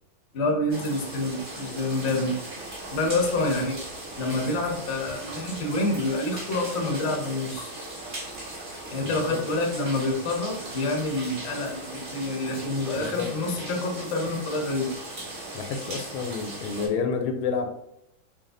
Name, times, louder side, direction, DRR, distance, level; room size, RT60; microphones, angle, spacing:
voice 1, 0.3-2.4 2.9-7.7 8.9-14.9, left 2 dB, 55° left, 1 dB, 0.7 m, -27 dB
sound 1, 0.7-16.9, right 1 dB, 40° right, 1.6 m, -38 dB
voice 2, 9.0-9.4 12.9-13.3 15.5-17.7, left 5 dB, 85° left, 6 dB, 1.4 m, -29 dB
4.0 x 2.3 x 3.7 m, 0.74 s
omnidirectional pair, 2.3 m